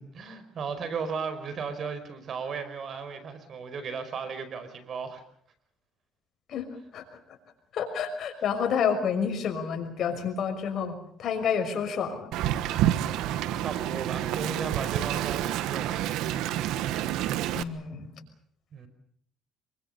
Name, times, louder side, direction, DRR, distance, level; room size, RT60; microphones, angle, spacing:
voice 1, 0.0-5.2 13.2-16.1 18.7-18.9, right 5 dB, 50° right, 11 dB, 5.0 m, -36 dB
voice 2, 6.9-7.4 7.7-12.3 17.5-18.1, left 7 dB, 55° left, 5 dB, 6.0 m, -29 dB
Wind, 12.3-17.6, right 12 dB, 85° right, 1.3 m, -28 dB
26.0 x 24.0 x 6.8 m, 0.62 s
cardioid pair, 105°, 0 cm